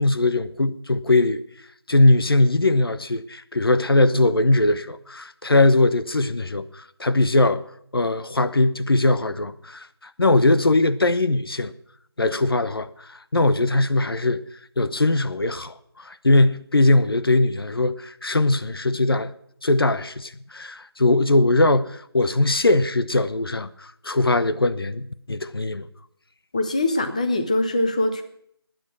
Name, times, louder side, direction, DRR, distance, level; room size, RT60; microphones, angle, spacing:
voice 1, 0.0-1.4 1.9-7.6 7.9-9.9 10.2-11.7 12.2-14.4 14.8-19.3 19.6-25.9, left 2 dB, 65° left, 0.9 m, -20 dB
voice 2, 26.5-28.2, left 1 dB, 15° left, 0.7 m, -22 dB
18.5 x 9.3 x 6.1 m
figure-of-eight pair, 170°, 13 cm